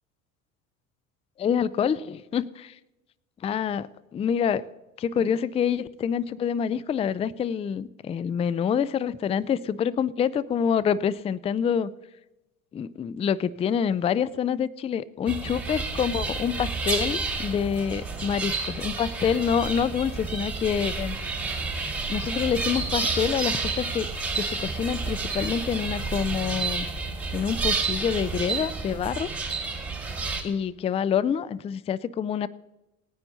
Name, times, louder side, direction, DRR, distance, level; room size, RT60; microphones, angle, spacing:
voice 1, 1.4-2.7 3.4-4.6 5.0-11.9 12.7-21.2 22.1-24.1 24.3-26.9 27.3-29.3 30.4-32.5, left 7 dB, 15° left, 19 dB, 0.4 m, -27 dB
sound 1, 15.3-30.4, right 4 dB, 5° right, 4.5 m, -30 dB
19.0 x 9.7 x 4.1 m, 1.0 s
figure-of-eight pair, 70°, 41 cm